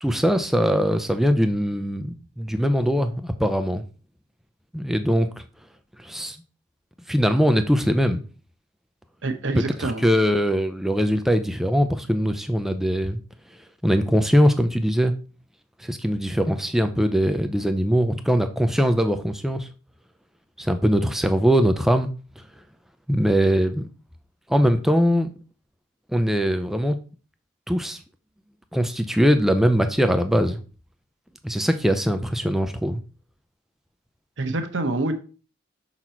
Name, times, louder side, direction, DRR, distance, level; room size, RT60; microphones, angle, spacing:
voice 1, 0.0-3.8 4.7-5.3 6.0-6.4 7.1-8.2 9.8-13.2 13.8-15.1 15.8-19.7 20.6-22.1 23.1-23.9 24.5-25.3 26.1-27.0 27.7-28.0 28.7-30.6 31.4-33.0, equal, ahead, 0.4 m, -21 dB
voice 2, 9.2-10.0 34.4-35.1, right 2 dB, 65° right, 1.0 m, -26 dB
6.0 x 4.1 x 4.4 m
head